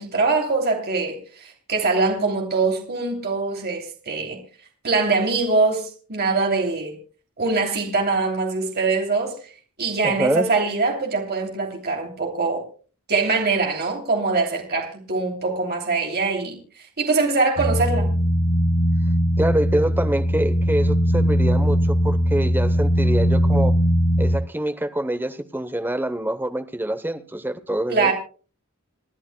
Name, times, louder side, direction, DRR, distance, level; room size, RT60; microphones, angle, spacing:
voice 1, 0.0-4.4 4.8-7.0 7.4-9.5 9.8-12.6 13.1-16.6 17.0-18.1 27.9-28.1, right 3 dB, 45° right, 2.8 m, -23 dB
voice 2, 10.0-10.5 19.4-23.7 24.2-28.1, right 1 dB, 10° right, 0.8 m, -25 dB
sound 1, 17.6-24.4, equal, 80° left, 2.2 m, -20 dB
28.5 x 11.0 x 2.2 m
head